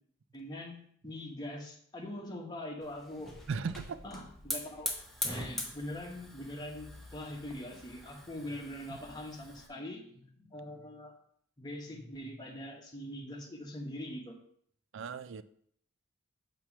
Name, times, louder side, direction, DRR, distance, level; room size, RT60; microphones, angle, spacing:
voice 1, 0.3-0.8 1.0-3.3 4.0-4.9 5.2-11.2 11.6-14.4, left 1 dB, 20° left, 0 dB, 1.1 m, -43 dB
Hiss / Fire, 2.8-9.7, left 1 dB, ahead, 0.8 m, -42 dB
voice 2, 3.5-4.0 14.9-15.4, right 5 dB, 60° right, 14 dB, 0.4 m, -36 dB
6.9 x 3.0 x 5.9 m, 0.64 s
head